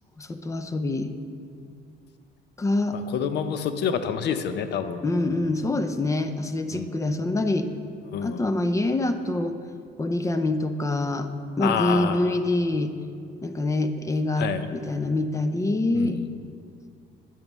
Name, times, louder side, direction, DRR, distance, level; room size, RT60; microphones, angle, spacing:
voice 1, 0.2-1.1 2.6-3.0 5.0-7.7 8.2-9.6 10.0-11.3 11.6-12.9 13.4-16.2, left 2 dB, 15° left, 9 dB, 0.4 m, -25 dB
voice 2, 2.9-5.0 6.7-6.9 8.1-8.5 11.6-12.4 14.4-14.7 15.9-16.3, left 7 dB, 60° left, 10 dB, 0.6 m, -28 dB
10.5 x 8.6 x 3.1 m, 2.3 s
cardioid pair, 125°, 19 cm